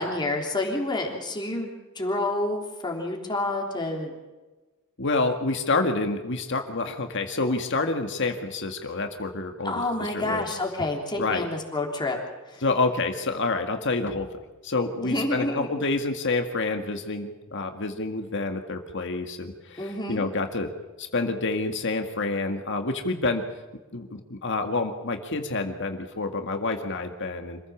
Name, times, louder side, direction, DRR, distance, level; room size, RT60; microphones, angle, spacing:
voice 1, 0.0-4.1 9.6-12.2 12.5-12.6 15.0-15.7 19.8-20.2, left 2 dB, 20° left, 0 dB, 3.4 m, -29 dB
voice 2, 5.0-10.4 11.2-11.4 12.6-14.3 14.6-20.7 21.0-23.4 23.9-27.6, left 3 dB, 60° left, 5 dB, 1.9 m, -28 dB
26.5 x 15.5 x 7.3 m, 1.2 s
head